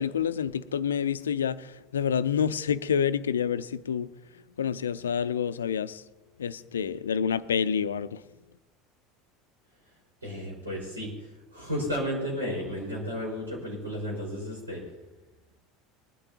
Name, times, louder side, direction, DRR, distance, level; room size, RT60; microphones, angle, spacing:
voice 1, 0.0-4.1 4.6-6.0 6.4-8.2, left 7 dB, 75° left, 15 dB, 0.4 m, -28 dB
voice 2, 10.2-14.8, equal, 80° right, -3 dB, 4.7 m, -33 dB
20.5 x 12.0 x 2.8 m, 1.1 s
figure-of-eight pair, 70°, 0 cm